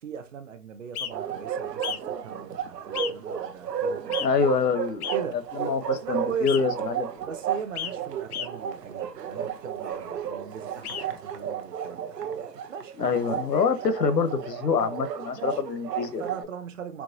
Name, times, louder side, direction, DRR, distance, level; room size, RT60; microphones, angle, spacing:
voice 1, 0.0-4.3 5.1-5.5 5.9-6.5 7.2-12.2 12.7-13.0 14.8-15.0 15.3-15.6 16.2-17.0, right 7 dB, 55° right, 0.7 m, -39 dB
sound 1, 0.9-1.1 1.8-2.0 2.9-3.1 4.1-4.3 5.0-5.2 6.5-6.6 7.8-7.9 8.3-8.5 10.8-11.0, left 9 dB, 65° left, 0.6 m, -32 dB
Bark, 1.1-16.4, right 8 dB, 85° right, 0.8 m, -33 dB
voice 2, 4.2-5.1 5.5-7.1 13.0-16.2, left 5 dB, 85° left, 0.9 m, -26 dB
4.6 x 2.0 x 2.6 m
hypercardioid pair, 160°, 47 cm